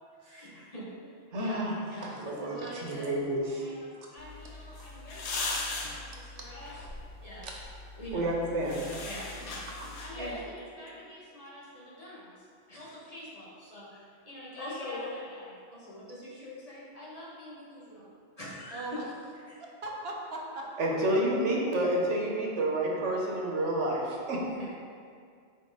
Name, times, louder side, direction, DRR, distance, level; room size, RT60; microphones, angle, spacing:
voice 1, 0.2-0.9 1.4-3.1 3.6-6.9 7.2-7.5 8.0-8.3 9.0-9.7 10.0-18.1 18.4-19.0 19.5-19.6 24.5-24.7, left 1 dB, 35° left, -8 dB, 1.4 m, -44 dB
voice 2, 1.3-1.7 2.0-3.6 8.1-9.0 9.7-9.9 20.8-24.7, right 1 dB, 90° right, -2 dB, 1.3 m, -30 dB
sound 1, 4.2-10.4, left 3 dB, 75° left, 1.0 m, -39 dB
voice 3, 18.7-19.1 19.6-20.9, right 2 dB, 65° right, -1 dB, 0.9 m, -39 dB
5.5 x 4.7 x 3.9 m, 2.2 s
omnidirectional pair, 1.2 m